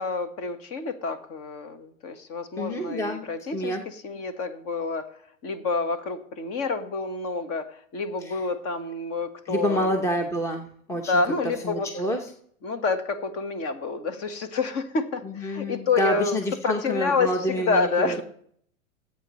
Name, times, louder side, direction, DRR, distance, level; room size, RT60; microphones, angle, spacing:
voice 1, 0.0-5.1 5.4-10.0 10.9-11.9 12.6-16.4 16.6-18.2, left 4 dB, 35° left, 9 dB, 1.5 m, -28 dB
voice 2, 2.6-3.3 3.5-3.8 8.2-8.4 9.5-11.1 11.6-12.3 15.2-18.2, equal, 5° left, 5 dB, 0.9 m, -28 dB
19.0 x 8.4 x 3.2 m, 0.62 s
hypercardioid pair, 125°, 42 cm